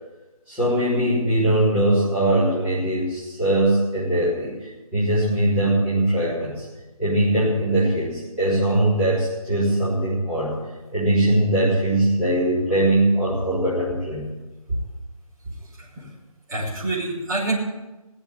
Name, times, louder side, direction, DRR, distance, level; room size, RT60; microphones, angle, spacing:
voice 1, 0.5-4.6 4.9-6.6 7.0-10.6 10.9-14.3, right 1 dB, 10° right, -14 dB, 4.0 m, -21 dB
voice 2, 15.6-16.1 16.5-17.6, right 2 dB, 30° right, -8 dB, 5.6 m, -27 dB
17.5 x 7.6 x 8.7 m, 1.1 s
figure-of-eight pair, 160°, 19 cm